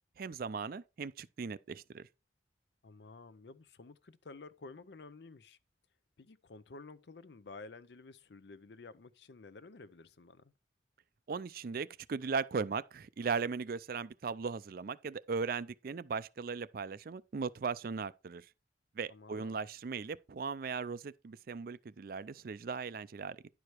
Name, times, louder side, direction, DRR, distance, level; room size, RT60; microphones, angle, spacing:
voice 1, 0.2-2.0 11.3-18.5 19.0-23.4, right 5 dB, 55° right, 0.4 m, -38 dB
voice 2, 2.8-5.6 6.2-10.5 19.1-19.6, left 3 dB, 65° left, 0.6 m, -52 dB
10.5 x 4.9 x 4.5 m
head